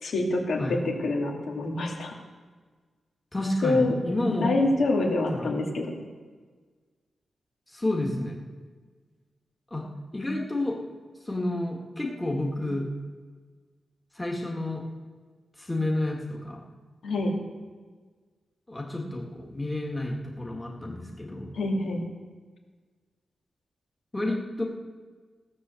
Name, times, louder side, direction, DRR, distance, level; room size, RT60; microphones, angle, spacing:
voice 1, 0.0-2.1 3.6-3.9 4.4-6.0 17.0-17.4 21.5-22.0, left 2 dB, 75° left, -1 dB, 2.6 m, -26 dB
voice 2, 3.3-4.5 5.3-5.6 7.7-8.4 9.7-9.9 10.1-10.8 11.3-12.9 14.2-14.8 15.6-16.6 18.7-21.5 24.1-24.6, left 1 dB, 10° left, -1 dB, 1.7 m, -30 dB
16.0 x 7.3 x 6.9 m, 1.4 s
wide cardioid pair, 140°, 0 cm